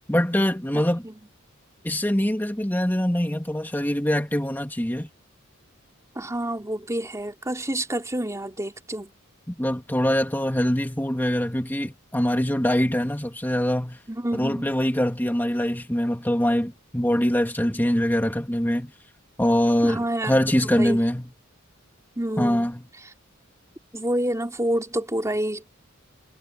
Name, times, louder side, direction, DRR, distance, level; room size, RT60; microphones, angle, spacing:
voice 1, 0.1-1.0 1.8-5.1 9.5-14.0 14.3-18.9 19.4-21.3 22.4-22.8, equal, 10° left, 2.5 m, -23 dB
voice 2, 0.7-1.1 6.1-9.1 14.1-14.7 19.8-21.0 22.1-22.7 23.0-23.1 23.9-25.6, right 1 dB, 15° right, 3.4 m, -28 dB
head